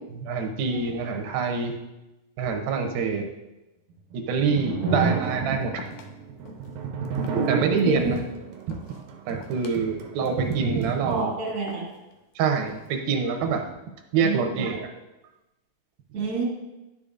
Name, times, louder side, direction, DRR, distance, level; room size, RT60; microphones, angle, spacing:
voice 1, 0.1-1.7 2.4-3.3 4.1-5.9 7.5-8.2 9.3-11.3 12.4-13.6 14.1-14.9, right 5 dB, 90° right, 4 dB, 2.7 m, -25 dB
sound 1, 4.0-11.2, right 4 dB, 75° right, 1.9 m, -33 dB
sound 2, 5.0-5.4 5.7-6.1 6.5-6.7 7.1-8.3 8.6-9.0 9.4-9.8 10.2-10.5 10.9-11.2 11.7-12.1 12.6-13.0, left 6 dB, 90° left, 1.6 m, -44 dB
voice 2, 7.3-8.2 11.0-11.9 14.2-14.5 16.1-16.4, right 3 dB, 35° right, -2 dB, 1.6 m, -28 dB
10.5 x 6.7 x 2.5 m, 0.99 s
omnidirectional pair, 4.1 m